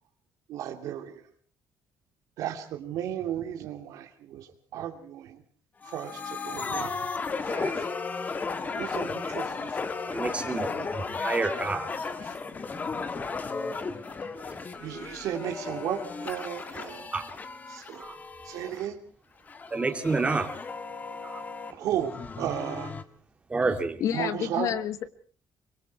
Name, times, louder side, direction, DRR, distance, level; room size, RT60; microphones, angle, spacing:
voice 1, 0.5-1.2 2.4-5.4 5.9-7.0 7.5-7.8 8.7-10.2 10.7-11.2 12.2-12.3 14.8-17.1 17.7-18.1 18.4-19.0 21.8-22.9 24.1-24.9, right 10 dB, 85° right, 2.6 m, -35 dB
sound 1, 5.8-18.9 19.5-23.0, left 4 dB, 30° left, 1.5 m, -35 dB
voice 2, 10.1-11.9 17.1-17.3 17.9-18.2 19.7-20.5 21.2-21.4 23.5-24.0, right 3 dB, 20° right, 2.6 m, -29 dB
voice 3, 24.0-25.1, left 10 dB, 65° left, 1.5 m, -29 dB
24.5 x 23.0 x 4.7 m
cardioid pair, 125°, 6 cm